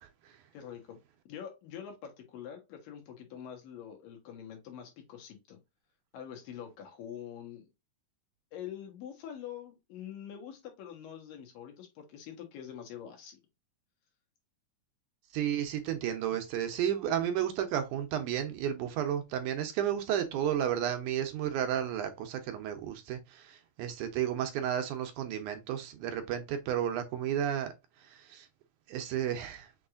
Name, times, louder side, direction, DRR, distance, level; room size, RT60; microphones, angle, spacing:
voice 1, 0.5-1.0 1.3-5.6 6.1-7.7 8.5-13.4, left 9 dB, 80° left, 3.0 m, -45 dB
voice 2, 15.3-27.7 28.1-28.5 28.9-29.7, right 10 dB, 75° right, 2.0 m, -32 dB
6.1 x 3.1 x 2.4 m
omnidirectional pair, 3.9 m